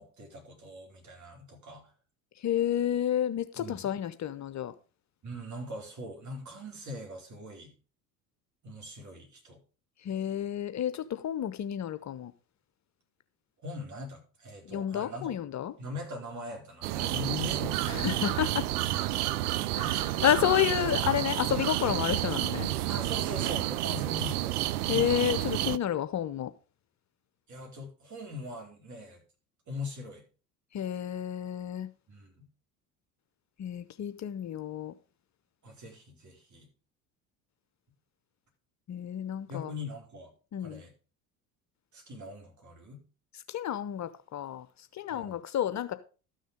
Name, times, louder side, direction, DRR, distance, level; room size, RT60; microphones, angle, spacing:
voice 1, 0.0-1.9 3.6-3.9 5.2-7.7 8.6-9.6 13.6-15.3 15.8-18.4 19.2-19.3 22.9-24.6 27.5-29.2 29.7-30.2 32.1-32.5 35.6-36.7 39.5-40.3 40.6-40.9 41.9-43.0 45.1-45.4, left 2 dB, 40° right, 4.0 m, -41 dB
voice 2, 2.4-4.7 10.0-12.3 14.7-15.7 17.9-18.7 19.7-22.7 24.9-26.5 30.7-31.9 33.6-34.9 38.9-39.7 40.5-40.8 43.3-45.9, left 10 dB, 40° left, 0.7 m, -30 dB
sound 1, 16.8-25.8, right 15 dB, 75° right, 0.6 m, -30 dB
12.5 x 6.5 x 5.0 m
hypercardioid pair, 60°, 46 cm